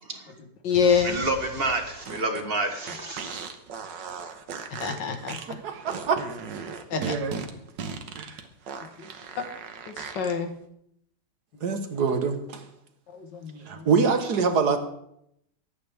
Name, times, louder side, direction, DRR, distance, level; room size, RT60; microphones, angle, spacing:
voice 1, 0.0-0.3 0.9-3.5, right 2 dB, 35° right, 5 dB, 1.5 m, -29 dB
voice 2, 0.6-1.2 4.7-5.4 6.9-7.1 9.0-9.1 9.9-10.5 11.7-11.8 13.1-13.9, left 6 dB, 80° left, 6 dB, 1.9 m, -26 dB
sound 1, 0.7-10.3, right 6 dB, 85° right, 1.8 m, -38 dB
voice 3, 5.4-6.3 6.9-7.4 8.2-8.4 11.6-12.7 13.7-14.8, right 5 dB, 65° right, 7 dB, 1.7 m, -25 dB
23.0 x 9.2 x 3.4 m, 0.75 s
omnidirectional pair, 1.9 m